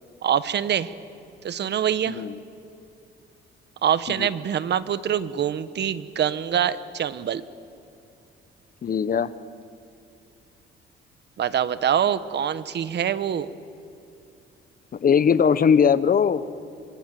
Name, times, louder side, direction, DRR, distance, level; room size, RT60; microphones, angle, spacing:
voice 1, 0.2-0.9 1.4-2.2 3.8-7.4 11.4-13.5, right 9 dB, 60° right, 14 dB, 1.2 m, -24 dB
voice 2, 2.1-2.4 4.2-4.3 8.8-9.3 14.9-16.4, left 7 dB, 45° left, 15 dB, 1.1 m, -20 dB
29.5 x 26.0 x 7.7 m, 2.7 s
cardioid pair, 90°, 20 cm